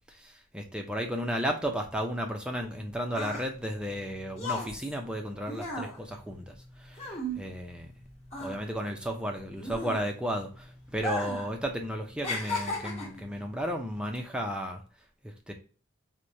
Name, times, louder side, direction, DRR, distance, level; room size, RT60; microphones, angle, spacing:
voice 1, 0.1-6.5 6.8-7.9 8.4-14.8 15.2-15.5, equal, 5° right, 3 dB, 0.4 m, -34 dB
sound 1, 2.6-8.0 8.3-10.4 10.9-11.5 11.8-13.3 14.0-14.2, left 1 dB, 30° left, 1.1 m, -36 dB
4.6 x 2.1 x 2.6 m, 0.39 s
head